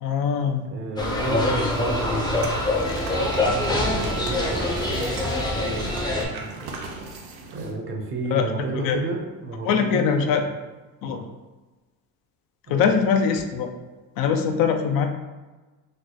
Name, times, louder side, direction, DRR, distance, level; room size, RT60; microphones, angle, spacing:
voice 1, 0.0-0.7 8.3-8.5 8.8-9.0 9.6-10.4 11.0-11.2 12.7-13.7 14.2-15.1, left 6 dB, 70° left, 6 dB, 0.5 m, -22 dB
voice 2, 0.6-6.7 7.5-10.6 11.0-11.2 12.7-12.9, right 2 dB, 35° right, 1 dB, 0.5 m, -32 dB
sound 1, 1.0-6.2, left 2 dB, 10° left, 0.5 m, -25 dB
Bowed string instrument, 1.4-6.4, right 2 dB, 40° left, 0.8 m, -39 dB
sound 2, 2.3-7.7, right 3 dB, 85° right, 0.7 m, -37 dB
3.1 x 2.1 x 3.8 m, 1.2 s
cardioid pair, 135°, 36 cm